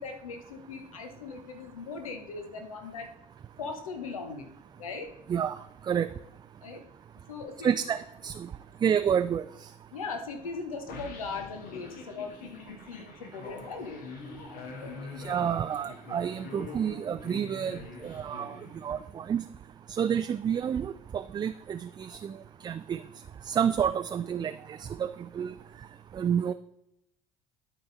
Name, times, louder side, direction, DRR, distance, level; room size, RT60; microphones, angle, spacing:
voice 1, 0.0-3.1 3.6-4.5 4.8-5.1 6.6-6.8 7.3-7.7 9.9-14.1 14.3-15.1, left 4 dB, 80° left, 5 dB, 1.0 m, -39 dB
voice 2, 7.6-8.3 8.8-9.4 15.2-17.8 18.0-18.6 18.8-19.4 19.9-22.3 22.6-23.0 23.5-25.1 25.4-25.5 26.1-26.5, right 8 dB, 25° right, 11 dB, 0.3 m, -29 dB
sound 1, 10.9-19.2, left 3 dB, 55° left, 1.5 m, -45 dB
12.0 x 4.7 x 3.9 m, 0.82 s
figure-of-eight pair, 60°, 17 cm